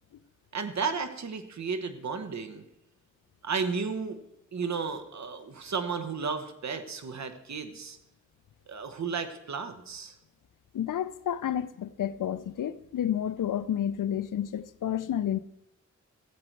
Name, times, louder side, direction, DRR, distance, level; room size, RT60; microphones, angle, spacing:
voice 1, 0.5-2.6 3.4-4.2 4.5-8.0 8.7-10.1, right 5 dB, 60° right, 1.1 m, -33 dB
voice 2, 10.7-15.4, left 10 dB, 90° left, 0.5 m, -30 dB
14.0 x 7.9 x 4.6 m
wide cardioid pair, 105°, 31 cm